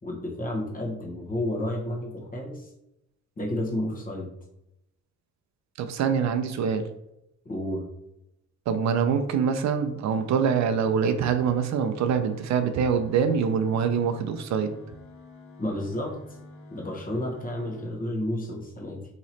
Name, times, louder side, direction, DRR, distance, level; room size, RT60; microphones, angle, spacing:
voice 1, 0.0-2.7 3.4-4.3 7.4-7.9 15.6-16.2 16.7-19.0, left 1 dB, 30° left, -1 dB, 1.2 m, -31 dB
voice 2, 5.8-6.8 8.7-14.7, right 6 dB, 65° right, 8 dB, 0.5 m, -24 dB
sound 1, 9.9-17.9, left 2 dB, 75° left, 1.3 m, -48 dB
3.0 x 2.9 x 4.0 m, 0.87 s
cardioid pair, 105°, 30 cm